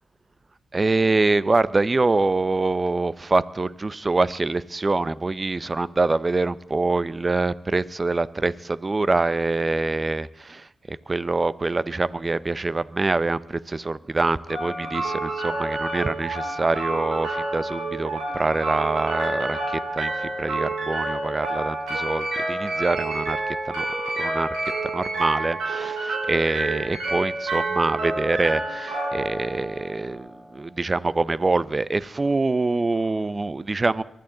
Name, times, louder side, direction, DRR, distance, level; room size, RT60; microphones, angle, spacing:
voice 1, 0.7-10.6 10.9-23.4 23.7-23.8 24.2-24.5 24.9-34.0, right 3 dB, 35° right, 18 dB, 0.6 m, -25 dB
sound 1, 14.5-30.5, right 2 dB, 90° right, 6.0 m, -29 dB
23.0 x 13.0 x 3.9 m, 0.78 s
supercardioid pair, 40°, 0 cm